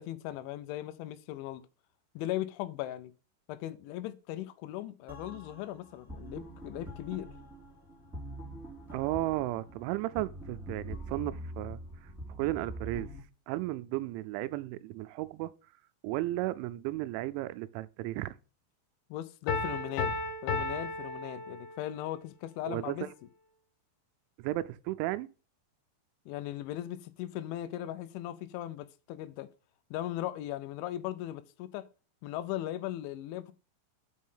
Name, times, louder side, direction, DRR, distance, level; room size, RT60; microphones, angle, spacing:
voice 1, 0.0-1.6 2.2-3.1 3.5-7.3 19.1-20.1 20.4-23.1 26.3-29.5 29.9-31.9 32.2-33.5, left 13 dB, 85° left, 3.1 m, -38 dB
sound 1, 5.1-13.2, right 1 dB, 5° right, 2.6 m, -44 dB
voice 2, 8.9-11.8 12.4-13.1 13.5-15.5 16.0-18.4 22.7-23.1 24.4-25.3, right 17 dB, 85° right, 2.9 m, -34 dB
Piano, 19.5-22.1, left 3 dB, 65° left, 3.1 m, -34 dB
6.4 x 6.1 x 5.6 m
omnidirectional pair, 5.4 m